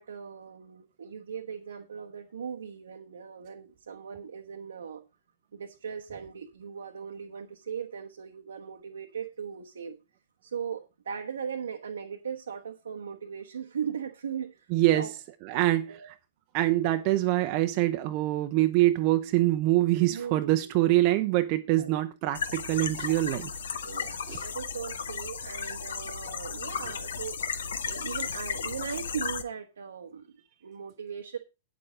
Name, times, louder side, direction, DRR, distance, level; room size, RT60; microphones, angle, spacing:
voice 1, 0.0-5.0 5.5-10.0 10.4-15.1 15.5-16.1 20.1-20.6 21.8-22.0 23.8-27.4 27.9-30.3 30.6-31.4, right 7 dB, 65° right, 1.1 m, -38 dB
voice 2, 14.7-15.1 15.4-15.9 16.5-23.5 24.3-24.5, right 16 dB, 40° right, 0.8 m, -25 dB
sound 1, 22.3-29.4, left 6 dB, 60° left, 1.2 m, -35 dB
9.8 x 7.6 x 4.9 m
figure-of-eight pair, 105°, 0 cm